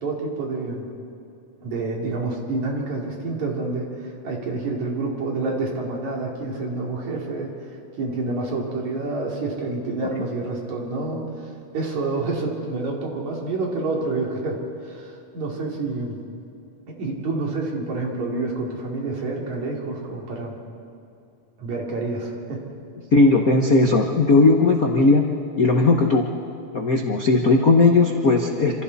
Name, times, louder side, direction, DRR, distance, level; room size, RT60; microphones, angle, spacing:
voice 1, 0.0-0.9 1.6-7.5 8.0-16.2 17.0-20.5 21.6-22.6, right 3 dB, 65° right, -1 dB, 4.3 m, -28 dB
voice 2, 23.1-25.3 25.6-26.2 26.7-28.8, left 3 dB, 85° left, 2 dB, 0.7 m, -17 dB
27.5 x 27.0 x 4.2 m, 2.6 s
omnidirectional pair, 3.5 m